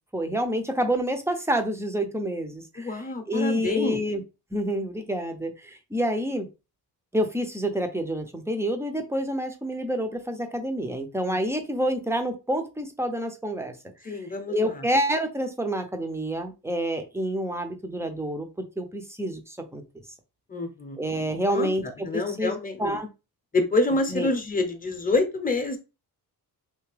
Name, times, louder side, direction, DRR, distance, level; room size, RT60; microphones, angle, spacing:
voice 1, 0.1-2.9 3.3-4.2 4.5-6.5 7.1-13.7 14.1-14.2 14.5-19.8 21.0-21.8 22.1-22.5 22.8-23.1 24.1-24.3, equal, 5° right, 6 dB, 0.6 m, -28 dB
voice 2, 2.8-4.0 11.3-11.4 14.0-14.9 20.5-21.0 21.5-23.0 23.5-25.8, left 2 dB, 20° left, 6 dB, 0.8 m, -27 dB
3.5 x 2.8 x 3.3 m, 0.29 s
cardioid pair, 100°, 41 cm